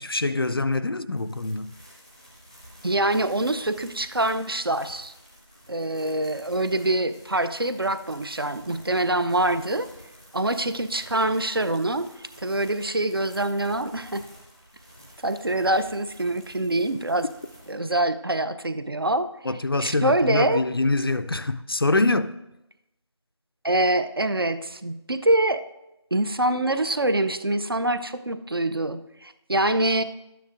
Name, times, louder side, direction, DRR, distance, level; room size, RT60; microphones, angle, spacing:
voice 1, 0.0-1.7 19.5-22.3, left 2 dB, 55° left, 0.4 m, -24 dB
sound 1, 1.2-17.7, equal, 10° right, 0.7 m, -50 dB
voice 2, 2.8-5.1 5.7-9.9 10.3-14.2 15.2-17.3 17.7-19.3 19.8-20.6 23.6-25.6 26.1-30.0, right 1 dB, 50° right, 0.5 m, -25 dB
12.5 x 9.2 x 2.5 m
figure-of-eight pair, 170°, 15 cm